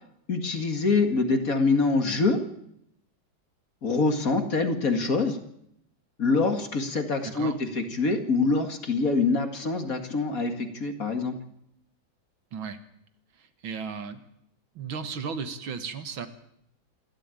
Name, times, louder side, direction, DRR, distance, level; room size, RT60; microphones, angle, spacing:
voice 1, 0.3-2.4 3.8-5.4 6.2-11.3, left 3 dB, 45° left, 7 dB, 2.3 m, -25 dB
voice 2, 7.2-7.6 12.5-12.8 13.4-14.2 14.8-16.3, right 5 dB, 75° right, 10 dB, 2.3 m, -35 dB
27.0 x 13.0 x 9.1 m, 0.76 s
omnidirectional pair, 2.2 m